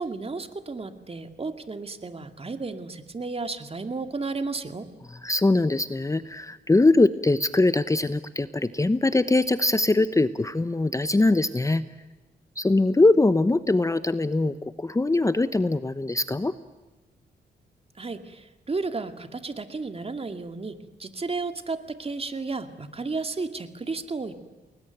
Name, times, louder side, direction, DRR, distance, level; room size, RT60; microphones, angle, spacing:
voice 1, 0.0-4.9 18.0-24.3, right 3 dB, 35° right, 8 dB, 2.3 m, -33 dB
voice 2, 5.2-11.8 12.6-16.5, left 2 dB, 20° left, 13 dB, 0.9 m, -22 dB
29.5 x 20.5 x 9.2 m, 1.2 s
cardioid pair, 85°, 18 cm